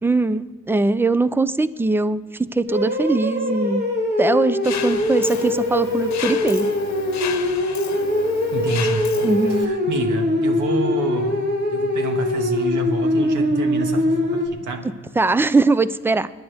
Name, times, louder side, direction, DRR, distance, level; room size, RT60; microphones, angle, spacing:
voice 1, 0.0-3.8 4.2-6.7 9.2-9.7 15.2-16.3, right 3 dB, 5° right, 15 dB, 0.4 m, -21 dB
sound 1, 2.7-14.5, left 1 dB, 35° right, 2.7 m, -22 dB
Mechanisms, 4.6-9.6, left 9 dB, 65° left, 1.0 m, -33 dB
voice 2, 8.5-9.1 9.6-11.4 11.7-14.9, right 3 dB, 75° right, 4 dB, 1.9 m, -28 dB
28.0 x 10.5 x 3.5 m, 1.5 s
cardioid pair, 90°, 30 cm